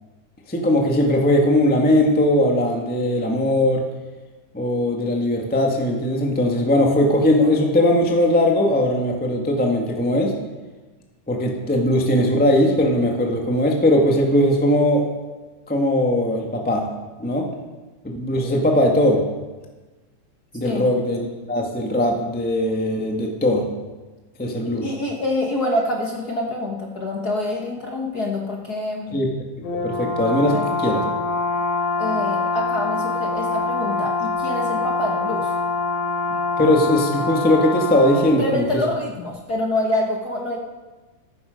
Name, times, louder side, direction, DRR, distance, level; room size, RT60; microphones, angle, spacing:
voice 1, 0.5-3.8 4.5-10.3 11.3-15.0 15.7-16.9 17.2-17.5 18.0-19.2 20.5-23.7 24.4-24.9 29.1-29.3 29.6-31.0 36.6-38.7, left 1 dB, 10° left, 1 dB, 0.5 m, -19 dB
voice 2, 24.6-29.2 30.5-30.7 32.0-35.5 38.2-40.6, left 1 dB, 45° left, 0 dB, 1.3 m, -26 dB
Brass instrument, 29.6-38.4, left 3 dB, 90° left, 4.1 m, -24 dB
14.5 x 12.5 x 5.2 m, 1.2 s
omnidirectional pair, 3.6 m